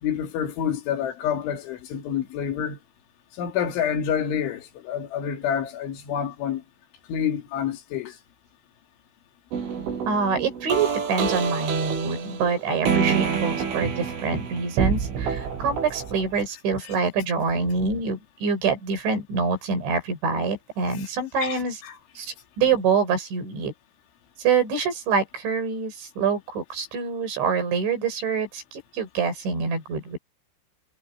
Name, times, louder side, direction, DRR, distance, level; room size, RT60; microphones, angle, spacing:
voice 1, 0.0-2.8 3.4-6.6 7.1-8.1 16.8-16.9 21.4-22.0, left 8 dB, 75° left, 4.9 m, -28 dB
sound 1, 9.5-16.4, right 6 dB, 85° right, 7.2 m, -27 dB
voice 2, 10.1-21.8 22.2-23.7 24.4-30.2, right 5 dB, 70° right, 8.3 m, -26 dB
omnidirectional pair, 5.6 m